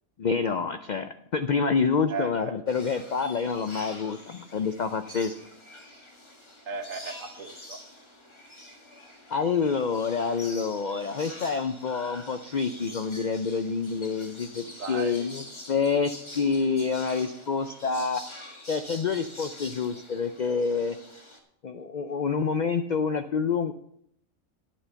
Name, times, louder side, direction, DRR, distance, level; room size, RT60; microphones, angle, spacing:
voice 1, 0.2-5.3 9.3-18.2 18.7-21.0 21.6-23.7, left 5 dB, 85° left, 9 dB, 0.4 m, -27 dB
voice 2, 2.1-2.5 6.7-7.8 14.8-15.3, right 5 dB, 70° right, 7 dB, 1.5 m, -35 dB
sound 1, 2.7-21.4, left 1 dB, 20° left, 1.4 m, -46 dB
10.0 x 8.4 x 5.7 m, 0.73 s
omnidirectional pair, 1.4 m